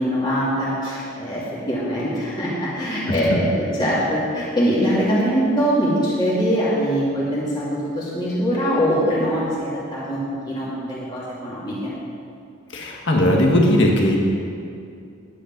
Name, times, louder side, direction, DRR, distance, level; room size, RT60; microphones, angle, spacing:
voice 1, 0.0-11.9, equal, 20° left, -9 dB, 2.4 m, -22 dB
voice 2, 12.7-14.2, left 1 dB, 60° left, -1 dB, 1.7 m, -18 dB
10.5 x 9.9 x 5.3 m, 2.5 s
head